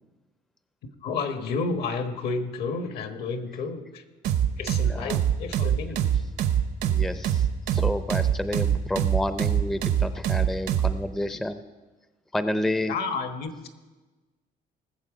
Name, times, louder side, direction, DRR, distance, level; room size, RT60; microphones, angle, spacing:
voice 1, 1.0-4.0 4.6-6.0 12.9-13.7, left 4 dB, 70° left, 7 dB, 1.4 m, -31 dB
sound 1, 4.2-11.0, right 9 dB, 75° right, 1.0 m, -23 dB
voice 2, 6.8-11.6 12.3-12.9, left 1 dB, ahead, 11 dB, 0.5 m, -30 dB
19.5 x 7.2 x 4.9 m, 1.2 s
cardioid pair, 110°, 17 cm